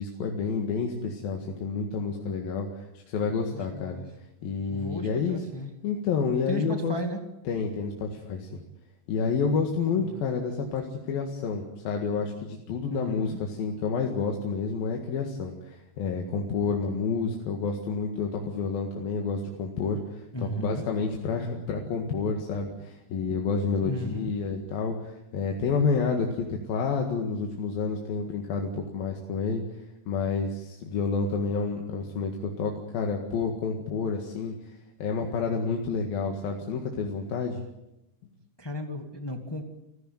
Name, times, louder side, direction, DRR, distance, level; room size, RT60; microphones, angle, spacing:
voice 1, 0.0-4.0 4.4-5.4 5.8-7.0 7.5-8.6 9.1-29.6 30.1-34.7 35.0-37.6, left 5 dB, 65° left, 2 dB, 3.6 m, -29 dB
voice 2, 3.5-4.0 4.7-5.7 6.5-7.2 9.9-10.2 12.9-13.4 20.3-20.8 23.8-24.3 38.6-39.6, equal, 20° left, 5 dB, 0.6 m, -35 dB
30.0 x 14.0 x 9.3 m, 0.91 s
omnidirectional pair, 4.6 m